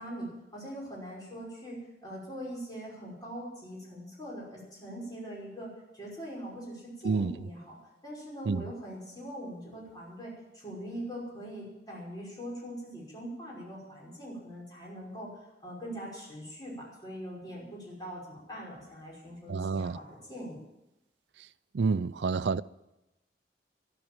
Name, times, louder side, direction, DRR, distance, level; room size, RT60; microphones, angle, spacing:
voice 1, 0.0-7.8 8.0-15.3 15.6-20.6, equal, 25° left, 5.7 m, -42 dB
voice 2, 19.5-20.0 21.7-22.6, right 4 dB, 80° right, 0.5 m, -28 dB
12.5 x 11.5 x 8.8 m
head